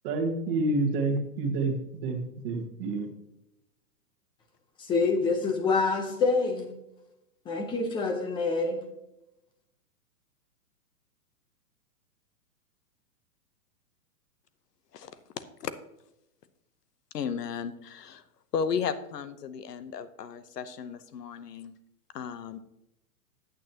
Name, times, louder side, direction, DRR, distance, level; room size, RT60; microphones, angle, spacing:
voice 1, 0.0-1.8 2.0-3.1, right 2 dB, 35° right, 2 dB, 1.7 m, -28 dB
voice 2, 4.8-6.7 7.5-8.8, left 4 dB, 10° left, 5 dB, 0.7 m, -26 dB
voice 3, 14.9-15.7 17.1-18.2 18.5-21.7 22.1-22.6, left 6 dB, 85° left, 12 dB, 1.0 m, -34 dB
8.9 x 8.8 x 2.9 m, 0.88 s
hypercardioid pair, 150°, 46 cm